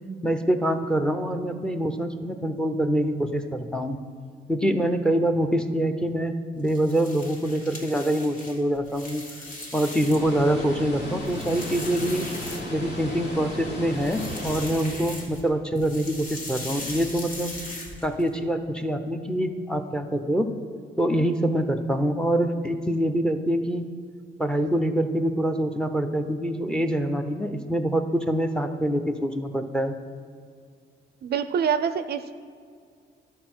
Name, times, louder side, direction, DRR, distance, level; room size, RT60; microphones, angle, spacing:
voice 1, 0.2-4.0 4.5-9.2 9.7-12.3 12.7-17.5 18.0-20.5 21.0-23.9 24.4-29.9, right 1 dB, 5° left, 7 dB, 0.7 m, -25 dB
sound 1, 6.6-10.4 10.8-13.1 13.9-15.5 15.7-18.3, left 1 dB, 45° left, 1.9 m, -39 dB
Water, 10.1-15.2, left 1 dB, 65° left, 2.3 m, -35 dB
voice 2, 31.2-32.3, right 7 dB, 55° right, 11 dB, 0.4 m, -25 dB
12.0 x 4.3 x 6.1 m, 2.2 s
cardioid pair, 90°, 20 cm